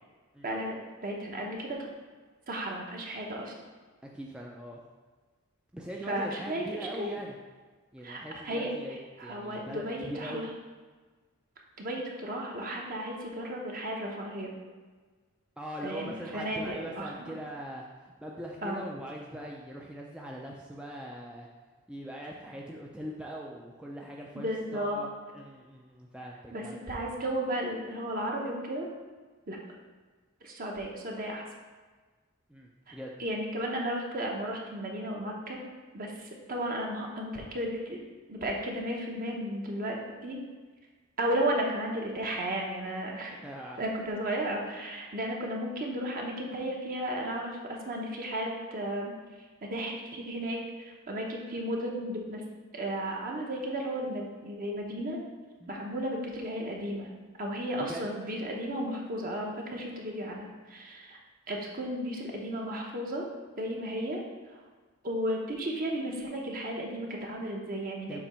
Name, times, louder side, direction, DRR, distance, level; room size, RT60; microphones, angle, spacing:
voice 1, 0.4-1.9 2.5-3.5 6.1-7.1 8.0-10.5 11.8-14.5 15.8-17.3 18.6-18.8 24.3-25.1 26.5-28.9 29.5-29.6 30.4-31.5 32.9-33.0 33.2-35.6 35.9-38.0 38.3-40.4 41.2-43.4 43.8-49.1 49.7-52.4 52.7-55.2 55.7-57.1 57.4-61.2 61.5-63.3 63.6-64.2 64.5-64.6 65.0-68.2, right 1 dB, 45° right, -1 dB, 1.1 m, -34 dB
voice 2, 4.0-4.8 5.7-7.4 7.9-10.5 15.6-21.5 21.9-26.8 32.5-33.1 43.4-43.8 55.6-55.7 57.9-58.0 68.1-68.2, equal, 5° right, -2 dB, 0.4 m, -41 dB
7.0 x 3.0 x 5.6 m, 1.4 s
head